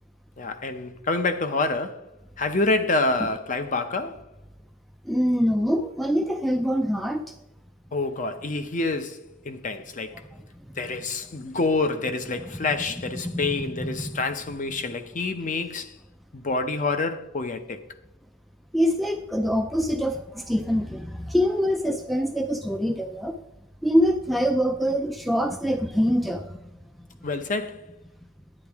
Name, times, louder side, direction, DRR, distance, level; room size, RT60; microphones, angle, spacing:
voice 1, 0.4-2.1 2.4-4.2 7.9-10.2 10.8-16.0 16.3-17.8 27.2-27.9, left 3 dB, 35° left, 0.7 m, -27 dB
voice 2, 5.1-7.3 13.2-13.5 18.7-23.3 23.8-26.7, equal, ahead, 0.4 m, -24 dB
9.9 x 9.7 x 3.5 m
head